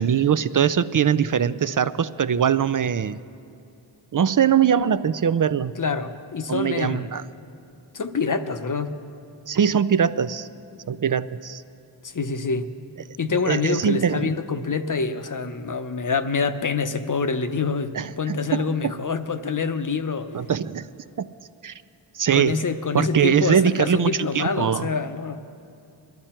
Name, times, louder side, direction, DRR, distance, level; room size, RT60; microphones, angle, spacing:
voice 1, 0.0-3.2 4.1-5.7 6.5-7.2 9.5-10.5 10.9-11.6 13.5-14.3 17.9-19.0 20.3-20.9 21.2-21.3 21.6-21.7 22.1-22.6 22.9-24.9, right 8 dB, 45° right, 15 dB, 0.5 m, -22 dB
voice 2, 5.8-7.1 7.9-9.0 12.0-12.7 13.2-20.3 22.3-25.4, left 5 dB, 40° left, 9 dB, 0.8 m, -26 dB
21.0 x 12.0 x 4.4 m, 2.6 s
cardioid pair, 55°, 48 cm